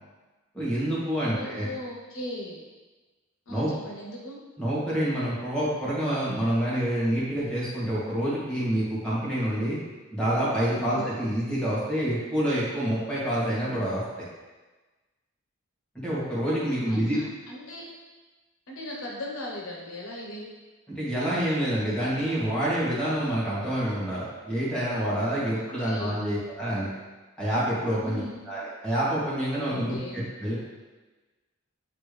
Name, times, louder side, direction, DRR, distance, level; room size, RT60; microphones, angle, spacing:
voice 1, 0.5-1.7 3.5-3.7 4.6-9.8 10.1-14.0 15.9-17.2 20.9-26.9 27.4-30.6, right 1 dB, 5° left, -9 dB, 1.8 m, -27 dB
voice 2, 1.2-2.6 3.5-4.4 10.8-11.1 16.9-17.9 18.7-20.5 25.5-26.2 28.0-28.4 29.7-30.2, left 1 dB, 85° left, -2 dB, 1.1 m, -38 dB
8.5 x 3.4 x 3.4 m, 1.2 s
head